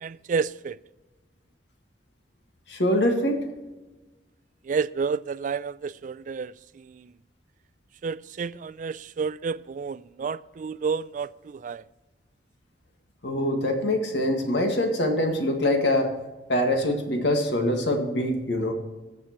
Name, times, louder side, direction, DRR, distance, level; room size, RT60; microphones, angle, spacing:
voice 1, 0.0-0.8 4.7-7.1 8.0-11.8, right 5 dB, 45° right, 0.3 m, -30 dB
voice 2, 2.7-3.4 13.2-16.1 16.5-18.7, left 1 dB, 85° left, 1.9 m, -24 dB
20.5 x 7.3 x 3.1 m
head